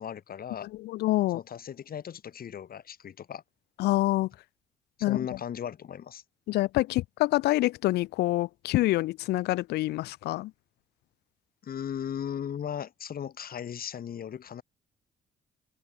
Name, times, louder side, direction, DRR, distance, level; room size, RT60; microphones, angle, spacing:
voice 1, 0.0-0.7 1.3-3.4 5.0-6.2 11.6-14.6, left 8 dB, 65° left, 7.7 m, -37 dB
voice 2, 0.8-1.4 3.8-4.3 5.0-5.2 6.5-10.5, left 17 dB, 80° left, 0.8 m, -26 dB
supercardioid pair, 55°, 17 cm